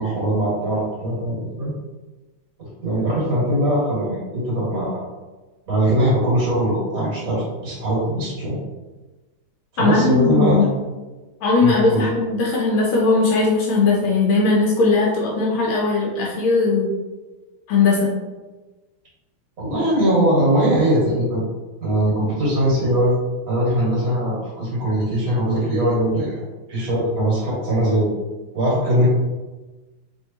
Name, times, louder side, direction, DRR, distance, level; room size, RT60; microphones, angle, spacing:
voice 1, 0.0-1.7 2.6-5.0 5.7-8.6 9.7-10.7 11.6-12.1 19.6-21.4 21.8-23.1 23.5-26.4 26.7-28.1 28.5-29.1, right 1 dB, 45° right, -7 dB, 2.0 m, -21 dB
voice 2, 9.8-10.8 11.4-16.9 17.7-18.1, left 3 dB, 80° left, -2 dB, 1.4 m, -18 dB
3.5 x 3.3 x 2.7 m, 1.2 s
omnidirectional pair, 2.3 m